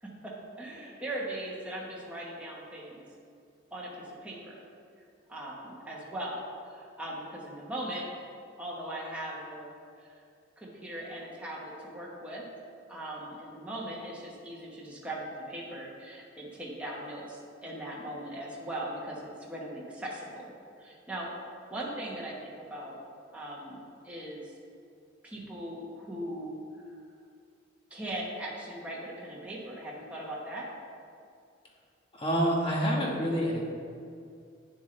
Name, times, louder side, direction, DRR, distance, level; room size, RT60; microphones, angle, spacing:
voice 1, 0.0-3.0 3.7-4.6 5.3-8.1 8.6-9.7 10.0-10.1 10.6-12.5 12.9-20.5 20.8-21.3 21.7-23.0 23.3-24.5 25.2-26.6 27.9-30.7, right 1 dB, 5° right, -5 dB, 1.2 m, -39 dB
voice 2, 32.1-33.6, equal, 25° left, -2 dB, 1.4 m, -27 dB
9.7 x 7.9 x 3.3 m, 2.4 s
head